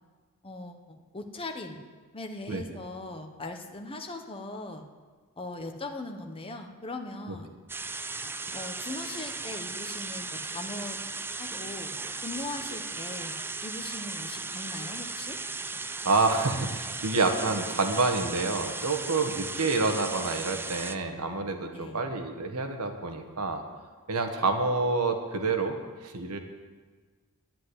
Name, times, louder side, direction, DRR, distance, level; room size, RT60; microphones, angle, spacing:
voice 1, 0.4-1.8 2.1-4.8 5.4-7.5 8.5-11.0 11.4-11.9 12.2-13.4 13.6-15.4 21.7-22.0, left 2 dB, 25° left, 4 dB, 1.1 m, -39 dB
sound 1, 7.7-21.0, right 3 dB, 10° right, 0.4 m, -36 dB
voice 2, 16.0-23.6 24.1-26.4, right 3 dB, 90° right, 5 dB, 1.5 m, -28 dB
10.5 x 7.7 x 9.8 m, 1.4 s
head